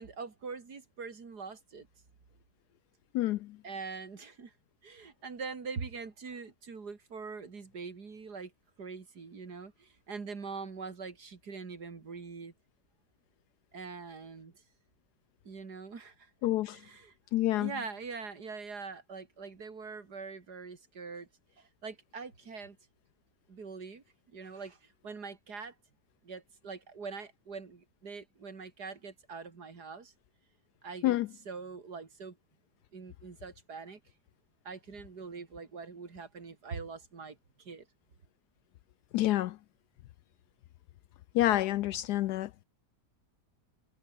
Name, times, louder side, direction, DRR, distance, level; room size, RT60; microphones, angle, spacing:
voice 1, 0.0-1.9 3.6-4.5 4.8-8.5 8.8-12.5 13.7-14.5 15.4-16.3 16.6-17.1 17.6-21.3 21.6-22.8 23.5-24.0 24.3-25.7 26.2-30.1 30.8-31.2 31.4-32.4 32.9-34.0 34.6-37.8, right 5 dB, 70° right, 3.2 m, -43 dB
voice 2, 16.4-16.8 17.3-17.7 31.0-31.3 39.1-39.5 41.3-42.6, left 15 dB, 75° left, 1.1 m, -28 dB
omnidirectional pair, 1.8 m